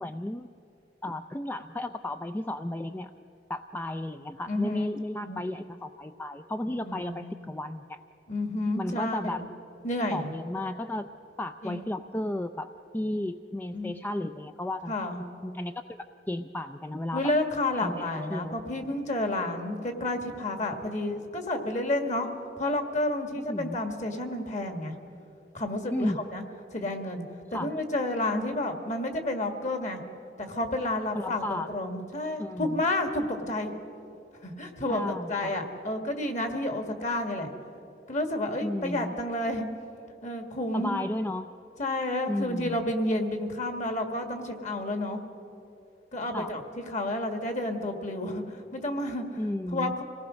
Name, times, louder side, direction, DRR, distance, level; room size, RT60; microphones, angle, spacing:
voice 1, 0.0-0.5 1.0-3.1 3.5-8.0 8.8-9.4 10.1-11.1 11.4-15.1 15.4-15.8 16.3-17.2 17.7-17.9 18.3-18.6 23.5-23.8 25.9-26.2 27.5-27.7 31.1-31.7 32.4-32.8 34.9-35.5 38.6-39.2 40.7-41.5 42.3-42.8 46.3-46.5 49.4-50.0, left 1 dB, 10° left, 9 dB, 0.4 m, -33 dB
voice 2, 4.5-4.8 5.2-5.4 6.9-7.2 8.3-9.5 9.8-10.3 11.6-11.8 13.7-14.0 14.9-15.2 17.1-22.3 22.6-24.9 25.5-26.4 26.7-27.2 27.5-30.0 30.4-33.7 34.4-37.5 38.1-39.7 40.2-41.0 41.8-45.2 46.1-46.6 46.9-49.4 49.7-50.0, left 1 dB, 45° left, 6 dB, 1.8 m, -30 dB
25.5 x 18.0 x 6.3 m, 2.9 s
head